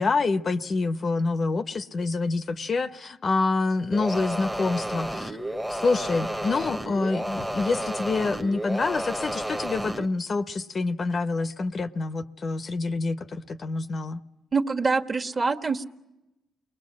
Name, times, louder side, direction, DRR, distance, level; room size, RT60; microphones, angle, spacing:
voice 1, 0.0-5.4 5.7-14.2, left 3 dB, 40° left, 1.0 m, -27 dB
sound 1, 3.9-10.1, right 1 dB, 5° right, 1.2 m, -31 dB
voice 2, 14.5-15.8, right 4 dB, 30° right, 1.6 m, -25 dB
29.0 x 21.5 x 7.5 m
cardioid pair, 90°, 0 cm